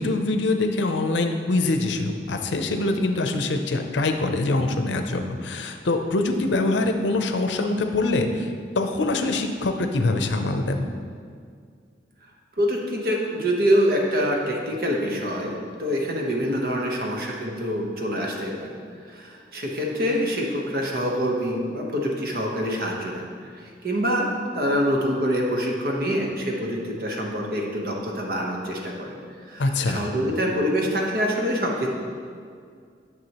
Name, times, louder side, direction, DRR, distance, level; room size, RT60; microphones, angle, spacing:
voice 1, 0.0-8.5 8.8-10.9 29.6-30.1, left 2 dB, 85° left, 6 dB, 0.6 m, -24 dB
voice 2, 12.6-18.8 19.1-23.3 23.6-29.2 29.5-31.9, equal, 55° right, 0 dB, 1.0 m, -25 dB
9.6 x 6.0 x 3.0 m, 2.2 s
head